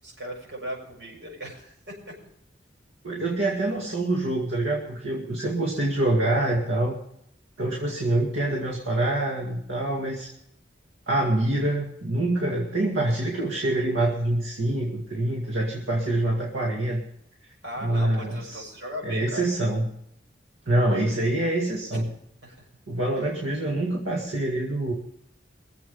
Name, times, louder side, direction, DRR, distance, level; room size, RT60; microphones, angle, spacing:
voice 1, 0.0-2.1 17.6-19.5 21.9-22.0 22.4-22.7, equal, 65° right, -1 dB, 6.7 m, -38 dB
voice 2, 3.0-7.0 7.6-10.3 11.1-17.0 17.8-18.7 19.0-19.9 20.7-22.1 22.9-24.9, right 1 dB, 85° right, -1 dB, 2.2 m, -25 dB
23.0 x 7.8 x 5.5 m, 0.72 s
head